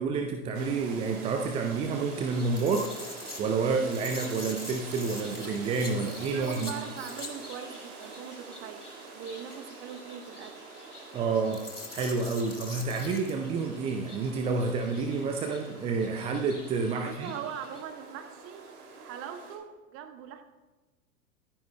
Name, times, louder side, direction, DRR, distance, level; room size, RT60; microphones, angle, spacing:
voice 1, 0.0-2.9 3.4-6.7 11.1-11.6 11.9-17.3, right 4 dB, 15° right, 4 dB, 0.5 m, -29 dB
sound 1, 0.5-19.6, right 4 dB, 45° right, 2.7 m, -46 dB
sound 2, 1.6-17.8, left 2 dB, 90° left, 1.9 m, -46 dB
voice 2, 6.3-8.9 9.1-10.6 16.9-20.4, right 8 dB, 30° right, 8 dB, 1.1 m, -41 dB
23.5 x 9.8 x 2.2 m, 1.2 s
figure-of-eight pair, 95°, 44 cm